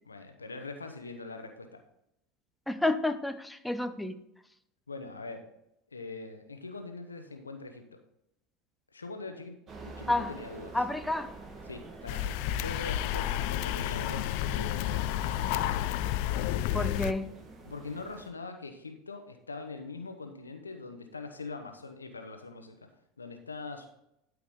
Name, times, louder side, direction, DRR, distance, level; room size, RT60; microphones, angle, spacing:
voice 1, 0.1-1.8 4.9-5.4 5.9-8.0 8.9-9.6 9.8-10.8 11.7-15.1 17.6-22.9 23.2-23.9, left 3 dB, 90° left, 0.9 m, -42 dB
voice 2, 2.7-4.2 10.1-10.3 10.7-11.3 16.7-17.3, left 2 dB, 5° left, 0.6 m, -30 dB
sound 1, 9.7-18.3, right 3 dB, 30° right, 1.7 m, -48 dB
sound 2, 12.1-17.1, left 12 dB, 60° left, 0.4 m, -31 dB
12.0 x 4.6 x 3.7 m
figure-of-eight pair, 80°, 0 cm